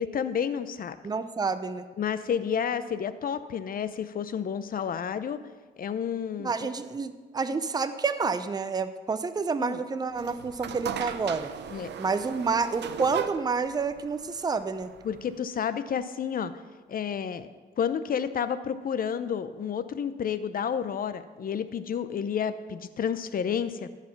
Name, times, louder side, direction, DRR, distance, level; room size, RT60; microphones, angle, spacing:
voice 1, 0.0-1.0 2.0-5.4 5.8-6.7 9.6-9.8 11.7-11.9 15.0-16.5 16.9-17.5 17.8-23.9, left 7 dB, 45° left, 13 dB, 0.6 m, -30 dB
voice 2, 1.0-1.8 6.4-11.5 12.0-14.9, right 4 dB, 20° right, 11 dB, 0.6 m, -29 dB
sound 1, 10.1-15.4, right 8 dB, 60° right, 0.6 m, -37 dB
13.0 x 4.9 x 5.9 m, 1.4 s
cardioid pair, 90°, 20 cm